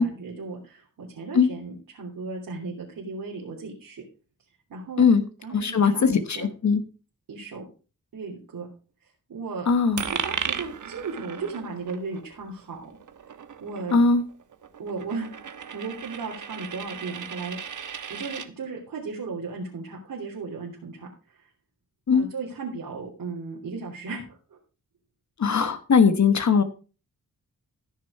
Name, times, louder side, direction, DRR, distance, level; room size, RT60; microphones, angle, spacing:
voice 1, 0.0-4.0 4.7-5.1 5.4-6.5 7.3-7.6 8.1-8.7 9.3-9.7 10.0-12.8 13.6-14.0 14.8-17.6 18.1-21.5 22.1-24.6, right 4 dB, 85° right, -3 dB, 3.3 m, -36 dB
voice 2, 5.5-6.8 9.7-10.0 13.9-14.2 22.1-22.3 25.4-26.6, left 5 dB, 55° left, 10 dB, 1.2 m, -20 dB
Coin (dropping), 10.0-18.5, right 7 dB, 65° right, 1.1 m, -36 dB
14.5 x 6.4 x 4.8 m, 0.35 s
wide cardioid pair, 95°, 33 cm